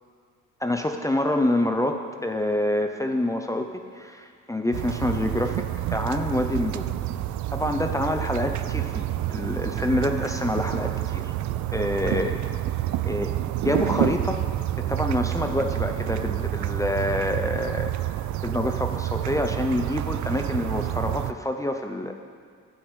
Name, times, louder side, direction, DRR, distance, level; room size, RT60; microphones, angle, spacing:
voice 1, 0.6-3.7 3.9-5.6 5.9-6.8 7.5-9.0 9.3-11.3 11.7-12.4 13.0-13.4 13.6-14.4 14.8-17.9 18.4-22.1, left 1 dB, 10° left, 4 dB, 0.8 m, -27 dB
sound 1, 4.7-21.3, right 14 dB, 70° right, 0.5 m, -28 dB
12.5 x 6.8 x 8.2 m, 2.1 s
cardioid pair, 90°, 30 cm